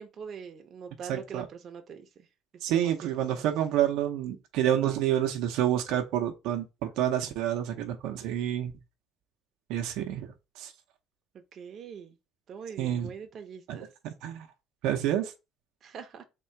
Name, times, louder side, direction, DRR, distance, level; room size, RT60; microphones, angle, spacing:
voice 1, 0.0-2.3 2.7-3.1 3.4-3.5 11.3-12.2 12.5-13.9 15.8-16.2, right 7 dB, 40° right, 0.7 m, -43 dB
voice 2, 1.1-1.4 2.6-8.7 9.7-10.3 10.6-10.7 12.8-13.1 13.7-13.8 14.0-14.5 14.8-15.3, right 11 dB, 75° right, 0.7 m, -28 dB
3.7 x 2.4 x 4.4 m
cardioid pair, 120°, 0 cm